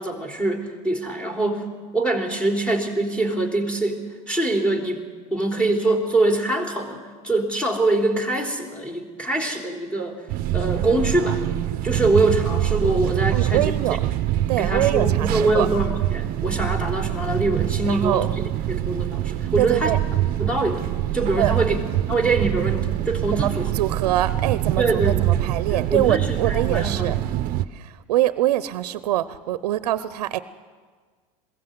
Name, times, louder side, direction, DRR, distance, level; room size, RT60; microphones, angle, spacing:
voice 1, 0.0-5.0 5.3-10.2 10.5-11.4 11.8-13.7 14.6-18.3 18.7-20.0 20.4-20.8 21.1-21.8 22.1-23.7 24.8-27.1, right 2 dB, 5° left, 1 dB, 3.5 m, -24 dB
sound 1, 10.3-27.6, right 13 dB, 45° right, 0.8 m, -25 dB
voice 2, 13.3-14.0 14.5-15.7 17.9-18.3 19.6-20.0 21.4-21.6 23.3-27.2 27.7-30.4, right 14 dB, 90° right, 14 dB, 0.7 m, -24 dB
21.5 x 16.5 x 8.0 m, 1.5 s
supercardioid pair, 120°, 20 cm